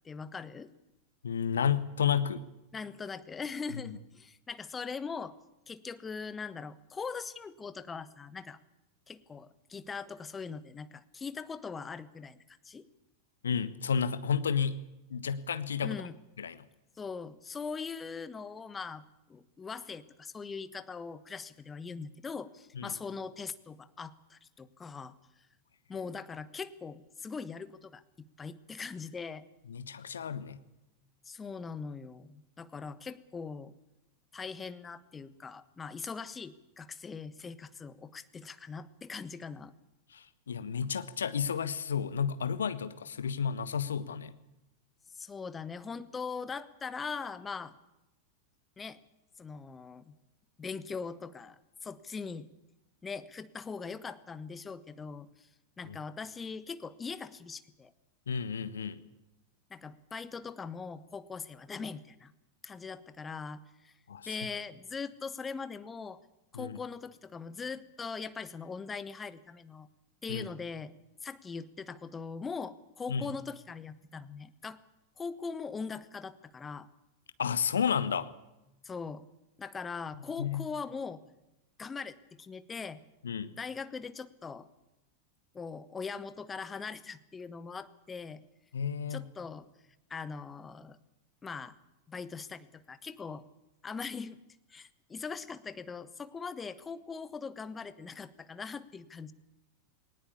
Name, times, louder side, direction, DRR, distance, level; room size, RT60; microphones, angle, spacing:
voice 1, 0.0-0.7 2.7-5.3 5.7-8.6 9.1-12.4 12.6-12.9 15.8-16.1 17.0-19.0 19.3-25.1 25.9-28.0 28.4-29.4 31.2-33.7 34.3-39.7 45.2-47.7 48.8-49.0 49.4-50.1 50.6-52.5 53.0-55.5 55.8-57.9 59.7-62.3 62.6-63.9 64.3-66.2 66.5-69.9 70.2-70.9 71.2-74.8 75.2-76.9 78.8-79.2 79.6-81.2 81.8-83.0 83.6-84.7 85.5-88.4 89.1-89.7 90.1-91.0 91.4-91.7 92.1-93.4 93.8-94.4 94.7-99.3, left 5 dB, 15° left, 14 dB, 1.2 m, -41 dB
voice 2, 1.2-2.4 3.8-3.9 13.4-14.8 15.1-16.0 16.4-16.6 22.7-23.0 29.7-30.6 40.1-44.3 55.8-56.0 58.3-59.0 64.1-64.3 66.5-66.8 70.3-70.5 73.1-73.3 77.4-78.3 80.1-80.7 83.2-83.5 88.7-89.3, left 7 dB, 70° left, 14 dB, 1.2 m, -32 dB
19.5 x 19.0 x 8.4 m, 0.94 s
figure-of-eight pair, 90°, 0 cm